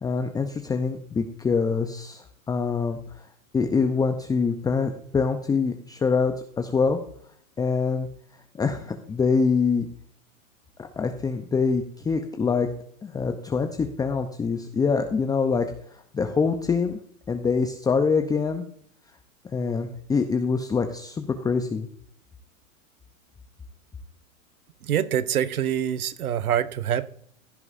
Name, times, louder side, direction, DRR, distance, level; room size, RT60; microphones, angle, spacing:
voice 1, 0.0-3.0 3.5-7.0 7.6-8.1 8.5-9.9 10.8-12.7 13.0-15.7 16.1-17.0 17.3-18.6 19.5-21.9, left 5 dB, 10° left, 0.6 m, -25 dB
voice 2, 24.8-27.1, right 10 dB, 80° right, 0.9 m, -25 dB
16.0 x 11.0 x 2.6 m
hypercardioid pair, 115°, 43 cm